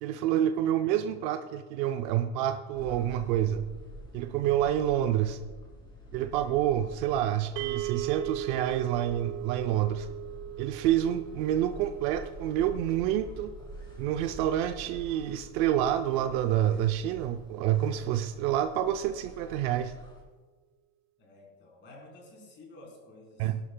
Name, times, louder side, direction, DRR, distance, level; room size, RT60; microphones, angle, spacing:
voice 1, 0.0-3.7 4.1-5.4 6.1-10.1 10.6-13.5 14.0-19.9 23.4-23.6, right 11 dB, 45° right, 8 dB, 0.5 m, -28 dB
sound 1, 2.7-20.2, left 1 dB, 10° left, 3.0 m, -47 dB
sound 2, 7.6-17.9, right 15 dB, 70° right, 0.8 m, -41 dB
voice 2, 21.2-23.5, left 2 dB, 30° left, -1 dB, 3.5 m, -52 dB
18.0 x 11.5 x 2.2 m, 1.4 s
supercardioid pair, 160°, 37 cm